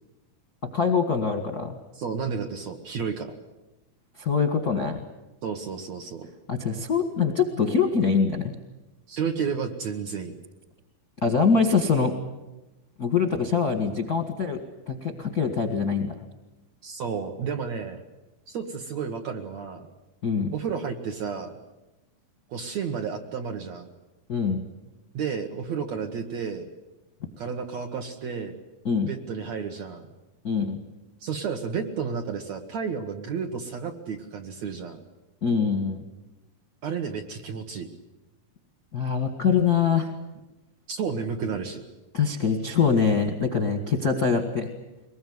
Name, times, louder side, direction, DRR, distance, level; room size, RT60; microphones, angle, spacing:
voice 1, 0.6-1.8 4.2-5.0 6.5-8.4 11.2-12.1 13.0-14.6 14.9-16.1 20.2-20.5 24.3-24.6 28.8-29.1 30.4-30.8 35.4-36.0 38.9-40.1 42.1-44.7, left 5 dB, 45° left, 6 dB, 1.3 m, -24 dB
voice 2, 2.0-3.3 5.4-6.3 9.1-10.3 16.8-18.0 18.5-19.9 20.5-21.5 22.5-23.9 25.1-26.7 27.4-28.5 29.1-30.1 31.2-35.0 36.8-37.9 40.9-41.8, right 6 dB, 60° right, 4 dB, 2.1 m, -31 dB
23.5 x 20.5 x 9.5 m, 1.0 s
omnidirectional pair, 4.4 m